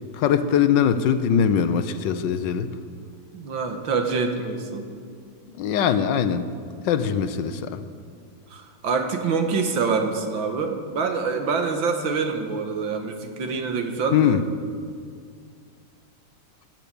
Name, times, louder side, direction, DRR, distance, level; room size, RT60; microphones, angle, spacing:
voice 1, 0.2-2.7 5.6-6.5 6.8-7.8 14.1-14.4, left 8 dB, 75° left, 11 dB, 1.4 m, -21 dB
voice 2, 3.3-4.9 8.5-14.4, right 4 dB, 85° right, 5 dB, 2.1 m, -26 dB
15.5 x 10.0 x 6.9 m, 2.2 s
omnidirectional pair, 2.1 m